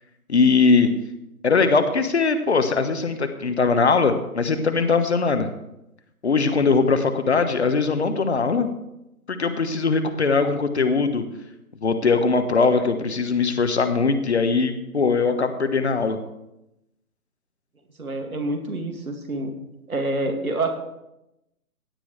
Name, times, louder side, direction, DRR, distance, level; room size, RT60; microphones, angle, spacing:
voice 1, 0.3-0.9 1.4-5.5 6.2-8.7 9.3-11.2 11.8-16.2, left 4 dB, 45° left, 8 dB, 1.2 m, -20 dB
voice 2, 18.0-19.5 19.9-20.7, right 2 dB, 65° right, 3 dB, 2.6 m, -27 dB
16.5 x 9.8 x 3.3 m, 0.88 s
figure-of-eight pair, 145°, 46 cm